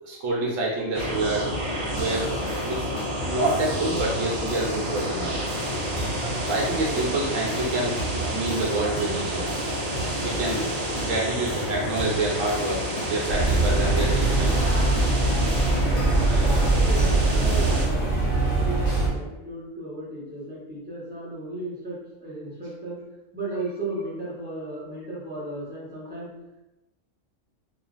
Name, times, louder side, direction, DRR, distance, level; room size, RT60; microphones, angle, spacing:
voice 1, 0.0-1.5 1.9-2.3 2.6-2.9 3.2-5.4 6.4-8.0 8.3-9.5 10.2-14.6, right 2 dB, 75° right, -2 dB, 1.1 m, -27 dB
sound 1, 0.9-17.9, equal, 40° right, 0.6 m, -29 dB
sound 2, 2.0-18.0, right 1 dB, 75° left, 1.2 m, -36 dB
sound 3, 13.3-19.1, right 2 dB, 45° left, 1.0 m, -22 dB
voice 2, 16.4-23.0 23.3-26.3, right 2 dB, 10° right, -7 dB, 1.1 m, -35 dB
2.9 x 2.5 x 3.9 m, 1.0 s
omnidirectional pair, 1.4 m